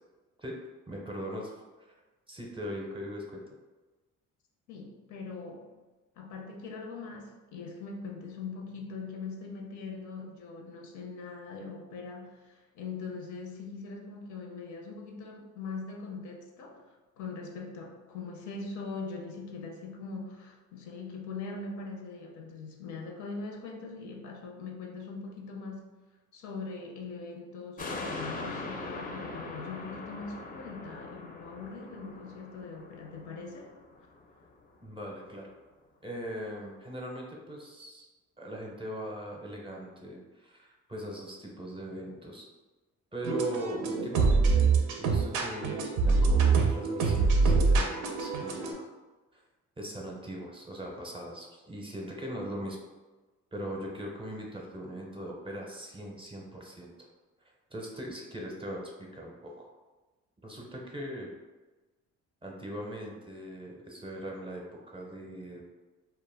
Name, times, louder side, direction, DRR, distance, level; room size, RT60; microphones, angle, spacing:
voice 1, 0.9-1.5 2.3-3.4 34.8-35.5 36.0-38.1 38.4-42.5 43.1-48.9 49.3-49.4 49.8-52.8 53.5-57.1 57.7-59.7 60.4-61.3 62.4-65.6, equal, 15° right, -1 dB, 0.5 m, -40 dB
voice 2, 4.7-5.7 6.2-16.8 17.2-25.9 26.3-33.7, left 4 dB, 75° left, 1 dB, 0.6 m, -41 dB
sound 1, 27.8-34.4 34.9-35.0, left 2 dB, 30° left, 0.4 m, -41 dB
sound 2, 43.2-48.7, right 4 dB, 90° right, 0.5 m, -25 dB
2.2 x 2.1 x 3.3 m, 1.2 s
cardioid pair, 90°, 30 cm